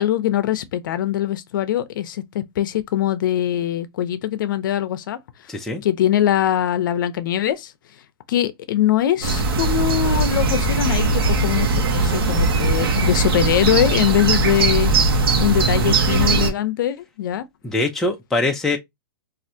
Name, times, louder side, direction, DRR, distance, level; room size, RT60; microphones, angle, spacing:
voice 1, 0.0-5.2 5.8-7.7 8.3-17.4, left 11 dB, 60° left, 0.5 m, -22 dB
voice 2, 5.5-5.8 17.6-18.8, left 2 dB, 5° left, 0.3 m, -22 dB
sound 1, 9.2-16.5, right 3 dB, 80° right, 1.0 m, -19 dB
3.2 x 2.5 x 2.7 m
hypercardioid pair, 165°, 12 cm